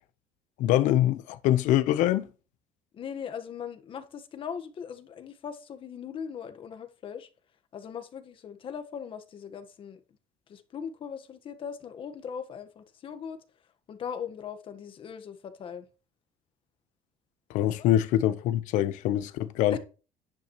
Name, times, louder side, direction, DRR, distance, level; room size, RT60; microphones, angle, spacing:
voice 1, 0.6-2.3 17.5-19.8, left 13 dB, 75° left, 1.0 m, -24 dB
voice 2, 2.9-7.3 7.7-10.0 10.5-13.4 13.9-15.9 17.6-17.7 19.7-19.8, left 7 dB, 45° left, 1.5 m, -39 dB
10.5 x 9.2 x 3.2 m
cardioid pair, 125°, 13 cm